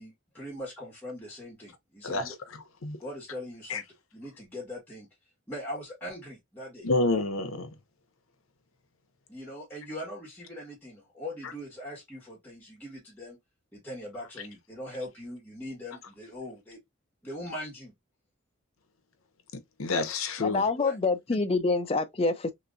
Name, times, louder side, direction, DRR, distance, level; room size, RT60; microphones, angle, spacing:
voice 1, 0.0-2.3 3.0-3.8 4.1-5.1 5.5-6.9 9.3-13.4 13.7-16.8 17.2-17.9 20.8-21.0, left 1 dB, 10° left, 1.4 m, -41 dB
voice 2, 2.0-2.3 2.8-3.0 3.7-3.8 6.8-7.7 19.8-20.6, left 3 dB, 80° left, 0.7 m, -28 dB
voice 3, 20.4-22.5, left 3 dB, 30° left, 0.5 m, -26 dB
3.3 x 2.9 x 2.5 m
head